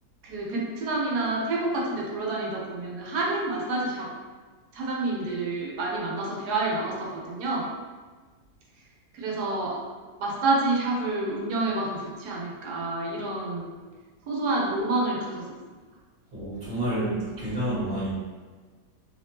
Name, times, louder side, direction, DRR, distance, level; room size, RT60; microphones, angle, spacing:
voice 1, 0.2-4.1 4.7-7.7 9.1-9.8 10.2-13.8 14.3-15.5, right 2 dB, 75° right, -3 dB, 1.2 m, -28 dB
voice 2, 16.3-18.1, right 1 dB, 40° right, -13 dB, 1.3 m, -29 dB
3.3 x 3.0 x 2.8 m, 1.4 s
omnidirectional pair, 1.7 m